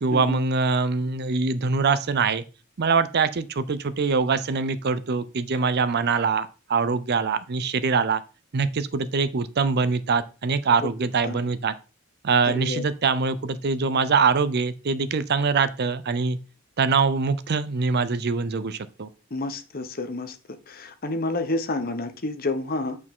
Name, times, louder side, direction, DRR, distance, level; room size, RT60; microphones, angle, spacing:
voice 1, 0.0-2.4 2.8-8.2 8.5-11.7 12.2-16.4 16.8-19.1, right 4 dB, 50° right, 14 dB, 0.5 m, -23 dB
voice 2, 12.5-12.9 19.3-20.4 20.7-23.0, left 2 dB, 40° left, 9 dB, 0.9 m, -29 dB
8.4 x 4.8 x 3.6 m, 0.33 s
head